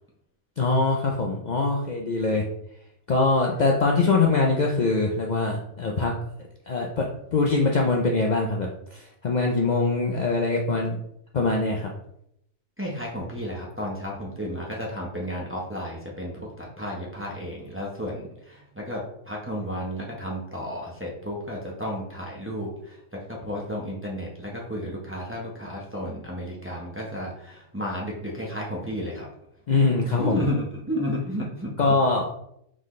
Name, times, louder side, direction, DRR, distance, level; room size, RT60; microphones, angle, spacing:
voice 1, 0.6-2.4 3.1-6.1 6.7-11.0 11.3-11.9 29.7-30.4 31.8-32.3, left 3 dB, 80° left, 0 dB, 0.4 m, -23 dB
voice 2, 12.8-23.0 23.3-29.3 30.2-31.9, equal, 15° right, -3 dB, 0.6 m, -32 dB
4.0 x 3.7 x 3.1 m, 0.76 s
omnidirectional pair, 1.4 m